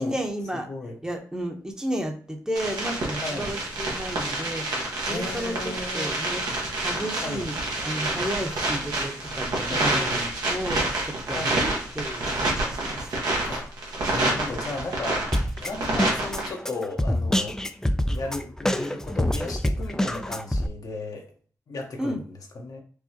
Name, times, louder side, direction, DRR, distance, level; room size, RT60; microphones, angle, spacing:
voice 1, 0.0-0.7 1.0-7.6 7.8-13.1 22.0-22.2, equal, 10° right, 3 dB, 0.8 m, -33 dB
sound 1, 2.6-16.5, right 2 dB, 85° right, 1.2 m, -28 dB
voice 2, 3.2-3.6 5.1-6.1 7.2-7.5 9.7-10.2 11.3-11.6 13.4-13.7 14.1-15.3 15.6-17.6 18.1-21.3 21.7-22.2 22.5-22.8, left 2 dB, 65° left, 2 dB, 0.9 m, -34 dB
Drum kit, 15.3-20.7, left 1 dB, 10° left, 0.4 m, -26 dB
4.7 x 2.4 x 2.8 m, 0.43 s
cardioid pair, 55°, 7 cm